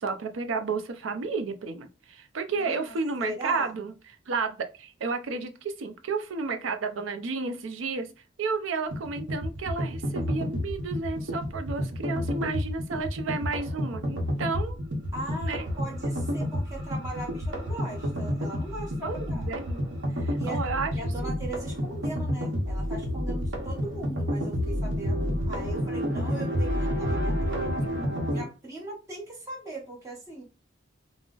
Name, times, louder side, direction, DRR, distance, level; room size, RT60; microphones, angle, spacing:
voice 1, 0.0-3.9 4.3-8.1 8.4-14.8 15.3-15.7 19.0-19.8 20.2-20.9 21.2-21.3 27.4-28.1, right 4 dB, 85° right, 0.5 m, -32 dB
voice 2, 2.6-2.9 3.2-3.7 15.1-19.5 20.4-20.7 20.9-27.8 28.3-30.4, right 1 dB, 15° right, 1.0 m, -39 dB
sound 1, 8.9-28.4, equal, 70° right, 0.8 m, -30 dB
3.7 x 2.0 x 2.4 m
head